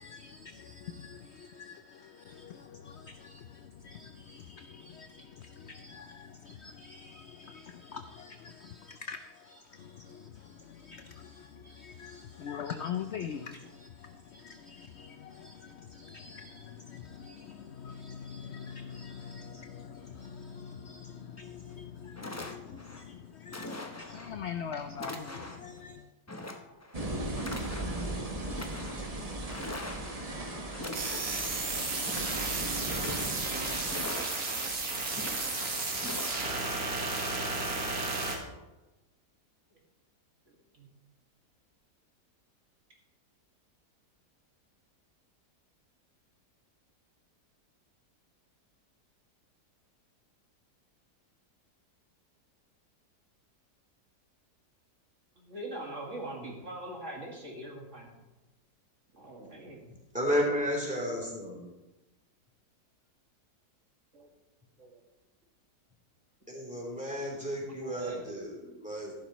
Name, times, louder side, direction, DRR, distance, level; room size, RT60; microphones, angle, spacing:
voice 1, 0.0-26.0, left 7 dB, 70° left, 0.6 m, -44 dB
sound 1, 21.7-21.8 22.2-23.0 23.5-24.3 24.9-25.7 26.3-27.0 27.4-28.1 28.4-29.0 29.5-30.3 30.7-31.5 31.9-32.5 32.8-33.5 33.9-34.7 35.1-35.7 36.0-36.4, left 2 dB, 25° left, 0.3 m, -42 dB
sound 2, 26.9-34.1, right 1 dB, 25° right, 1.2 m, -37 dB
sound 3, 30.9-38.4, right 3 dB, 65° right, 2.2 m, -33 dB
voice 2, 40.5-40.9 55.4-58.2 59.1-59.9 64.1-64.3 64.8-65.0 67.7-68.2 68.6-68.8, right 1 dB, 45° right, 2.4 m, -42 dB
voice 3, 59.9-61.6 66.5-69.1, equal, 5° right, 3.2 m, -33 dB
14.0 x 11.5 x 3.1 m
omnidirectional pair, 1.7 m